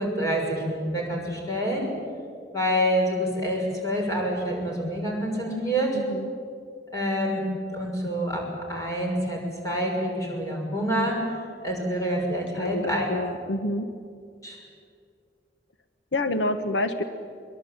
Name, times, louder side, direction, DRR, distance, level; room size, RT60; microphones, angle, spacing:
voice 1, 0.0-1.9 2.5-6.0 6.9-7.4 7.7-11.2 11.6-13.1 14.4-14.6, equal, 20° left, -1 dB, 6.4 m, -27 dB
voice 2, 5.9-6.3 12.5-13.9 16.1-17.0, left 1 dB, 80° left, 9 dB, 1.1 m, -28 dB
23.0 x 22.5 x 8.9 m, 2.3 s
head